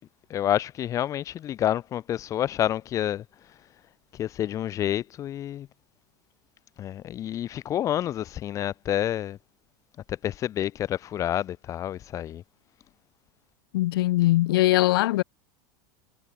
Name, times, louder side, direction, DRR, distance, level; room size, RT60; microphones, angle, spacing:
voice 1, 0.3-3.2 4.1-5.7 6.8-9.4 10.1-12.4, left 11 dB, 25° left, 6.0 m, -28 dB
voice 2, 13.7-15.2, left 17 dB, 80° left, 4.4 m, -21 dB
supercardioid pair, 165°, 12 cm